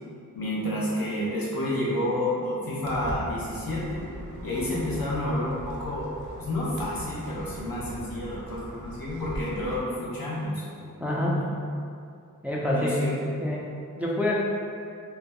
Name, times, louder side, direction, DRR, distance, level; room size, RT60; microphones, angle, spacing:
voice 1, 0.3-4.0 4.4-6.1 6.4-10.9 11.1-11.5 12.7-13.1, left 1 dB, 75° left, -7 dB, 0.9 m, -30 dB
Walk footsteps, 2.8-9.8, right 1 dB, 55° right, 0.6 m, -39 dB
voice 2, 11.0-11.4 12.4-13.1 13.4-14.4, left 1 dB, 5° right, -5 dB, 0.3 m, -27 dB
2.8 x 2.2 x 3.6 m, 2.4 s
wide cardioid pair, 105°, 35 cm